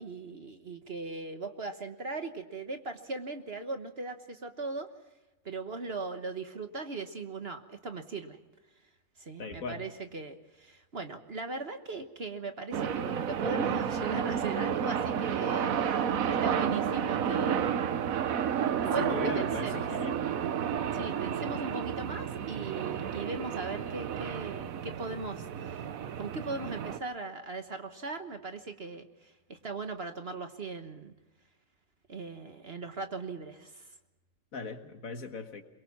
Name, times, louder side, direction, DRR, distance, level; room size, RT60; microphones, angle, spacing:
voice 1, 0.0-4.9 5.4-8.4 9.2-18.3 18.8-19.9 20.9-25.8 26.2-31.1 32.1-33.9, right 3 dB, 40° right, 7 dB, 1.4 m, -39 dB
voice 2, 9.4-9.9 19.0-20.3 34.5-35.6, left 4 dB, 60° left, 7 dB, 1.9 m, -38 dB
sound 1, 12.7-27.0, right 8 dB, 60° right, 1.2 m, -31 dB
23.0 x 22.5 x 6.0 m, 1.1 s
omnidirectional pair, 1.7 m